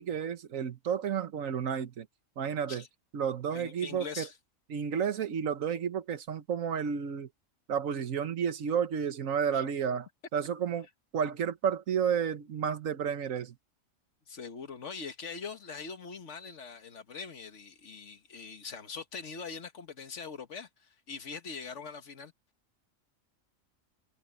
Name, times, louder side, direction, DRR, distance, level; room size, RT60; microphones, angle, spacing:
voice 1, 0.0-2.1 2.4-2.8 3.1-4.3 4.7-7.3 7.7-10.9 11.1-13.5, right 7 dB, 85° right, 1.5 m, -31 dB
voice 2, 3.5-4.4 9.5-9.6 14.3-22.3, left 5 dB, 65° left, 1.8 m, -42 dB
omnidirectional pair, 1.4 m